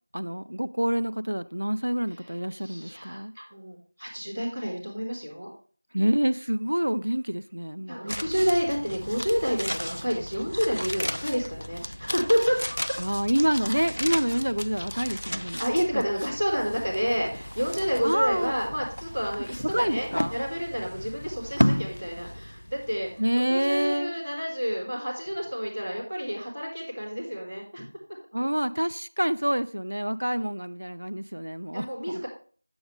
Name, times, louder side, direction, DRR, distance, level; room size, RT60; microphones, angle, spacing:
voice 1, 0.1-3.3 5.9-8.0 13.0-15.6 15.9-16.0 18.0-18.6 19.6-20.3 23.2-24.1 28.3-32.2, equal, 65° right, 11 dB, 0.5 m, -27 dB
voice 2, 2.6-5.5 7.9-12.6 12.8-13.2 15.6-23.2 23.5-27.8 30.3-30.5 31.7-32.3, equal, ahead, -22 dB, 2.3 m, -29 dB
sound 1, 8.1-23.3 23.5-23.6, equal, 70° left, 0.3 m, -33 dB
8.7 x 7.9 x 3.2 m, 0.42 s
figure-of-eight pair, 175°, 0 cm